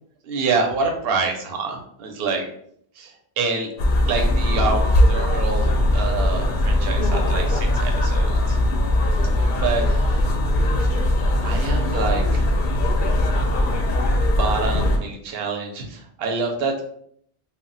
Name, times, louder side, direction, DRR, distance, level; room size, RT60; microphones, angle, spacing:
voice 1, 0.2-2.5 3.0-3.7 4.1-8.6 9.5-10.3 11.4-12.5 14.2-16.8, right 4 dB, 70° right, 3 dB, 0.8 m, -27 dB
sound 1, 3.8-15.0, left 1 dB, 60° left, 0.6 m, -20 dB
2.1 x 2.1 x 3.8 m, 0.66 s
omnidirectional pair, 1.1 m